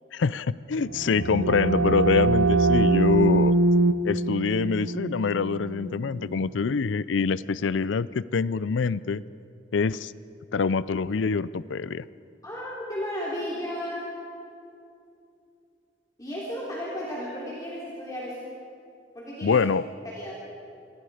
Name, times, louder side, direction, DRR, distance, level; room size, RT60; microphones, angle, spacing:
voice 1, 0.1-3.5 4.0-9.2 9.7-10.1 10.5-12.0 19.4-19.8, left 5 dB, 80° left, 18 dB, 0.5 m, -25 dB
sound 1, 0.8-6.4, right 2 dB, 75° right, 0.7 m, -23 dB
voice 2, 12.4-14.1 16.2-18.4 19.1-19.7 20.0-20.3, equal, 20° left, -6 dB, 3.6 m, -34 dB
27.5 x 23.5 x 5.0 m, 2.6 s
head